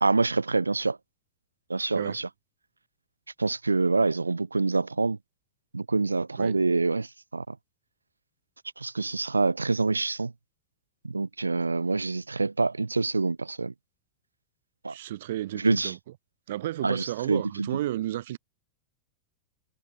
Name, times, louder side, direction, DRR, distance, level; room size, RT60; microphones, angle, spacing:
voice 1, 0.0-1.0 1.7-2.3 3.4-5.2 5.7-7.6 8.8-10.3 11.0-13.7 14.8-14.9 15.5-15.9 16.8-17.7, right 3 dB, 80° right, 0.5 m, -26 dB
voice 2, 14.9-16.0 16.5-18.4, right 14 dB, 55° right, 0.8 m, -32 dB
figure-of-eight pair, 90°, 0 cm